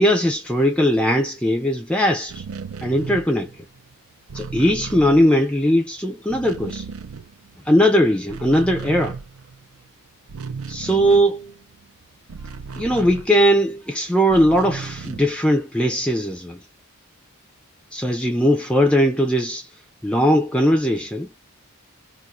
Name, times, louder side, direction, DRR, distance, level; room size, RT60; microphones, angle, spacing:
voice 1, 0.0-2.4 2.8-3.5 4.3-6.9 7.7-9.2 10.7-11.5 12.8-16.6 17.9-19.7 20.0-21.3, equal, 5° left, 0.3 m, -19 dB
sound 1, 2.2-5.9 6.1-7.8 8.1-13.8 14.2-15.5, right 5 dB, 75° right, 0.5 m, -35 dB
2.4 x 2.4 x 3.9 m
head